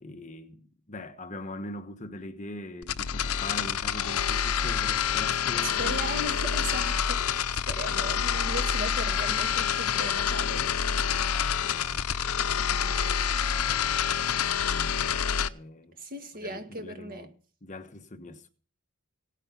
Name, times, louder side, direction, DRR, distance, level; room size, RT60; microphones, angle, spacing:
voice 1, 0.0-6.0 10.9-12.0 12.4-14.9 15.4-16.0 16.4-17.4 17.6-18.5, left 1 dB, 35° left, 1.2 m, -42 dB
sound 1, 2.8-15.5, left 8 dB, 75° left, 0.7 m, -27 dB
voice 2, 5.8-10.8 16.0-17.3, right 1 dB, 40° right, 1.8 m, -37 dB
17.0 x 9.7 x 5.8 m
head